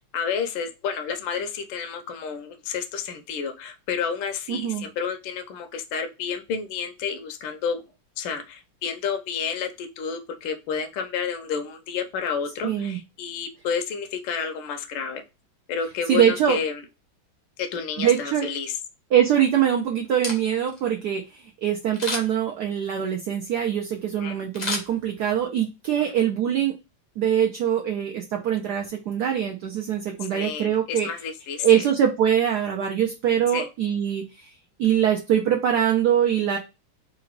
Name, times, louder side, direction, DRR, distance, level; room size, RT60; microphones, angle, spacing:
voice 1, 0.1-7.8 8.2-15.2 15.7-16.8 17.6-18.8 24.2-24.4 30.3-31.9 33.5-33.7, left 6 dB, 70° left, 5 dB, 1.3 m, -30 dB
voice 2, 4.5-4.9 12.6-13.0 16.1-16.6 18.0-18.5 19.1-21.2 21.6-26.7 27.2-31.1 31.6-34.2 34.8-36.6, right 9 dB, 70° right, 2 dB, 1.0 m, -23 dB
Camera, 20.0-20.8 21.9-22.5 24.5-25.5 25.9-26.0, left 2 dB, 35° left, 0.6 m, -31 dB
3.9 x 2.6 x 4.5 m, 0.27 s
omnidirectional pair, 2.3 m